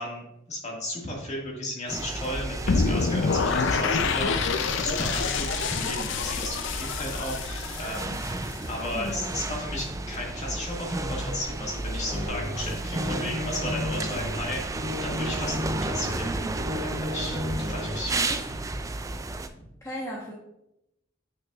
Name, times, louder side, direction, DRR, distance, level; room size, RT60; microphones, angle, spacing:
voice 1, 0.0-8.2 8.7-16.3 16.8-18.4, left 1 dB, 40° left, -2 dB, 1.9 m, -34 dB
sound 1, 1.9-19.5, right 2 dB, 15° right, 0.4 m, -33 dB
sound 2, 2.7-8.7, left 4 dB, 70° left, 0.5 m, -27 dB
voice 2, 5.8-6.2 8.9-9.6 16.2-16.6 18.2-18.4 19.6-20.3, equal, 15° left, -4 dB, 1.1 m, -38 dB
sound 3, 12.0-18.0, left 1 dB, 60° right, 1.7 m, -34 dB
8.8 x 6.0 x 2.4 m, 0.85 s
head